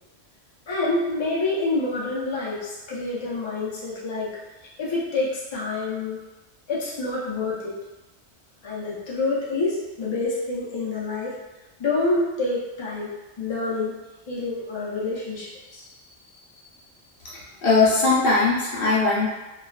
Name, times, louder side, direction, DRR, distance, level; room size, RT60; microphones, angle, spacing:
voice 1, 0.7-4.4 4.8-6.2 6.7-7.8 8.6-11.3 11.8-14.0 14.3-16.0, left 3 dB, 35° left, -7 dB, 0.4 m, -27 dB
voice 2, 17.3-19.3, left 3 dB, 60° left, -7 dB, 0.8 m, -20 dB
2.3 x 2.3 x 2.2 m, 1.1 s
omnidirectional pair, 1.1 m